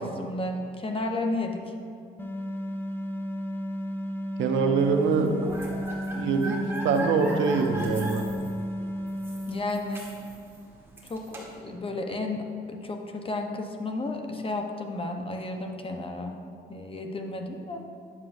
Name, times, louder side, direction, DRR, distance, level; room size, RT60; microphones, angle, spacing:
voice 1, 0.0-1.7 9.5-10.1 11.1-16.4 16.7-17.8, left 2 dB, 25° left, 4 dB, 0.8 m, -32 dB
sound 1, 2.2-10.3, equal, 10° left, 0.5 m, -33 dB
voice 2, 4.4-5.5 6.2-8.2, right 5 dB, 75° right, 5 dB, 0.7 m, -24 dB
sound 2, 5.1-11.6, right 1 dB, 10° right, 1.7 m, -39 dB
9.7 x 7.3 x 2.6 m, 2.4 s
cardioid pair, 90°, 20 cm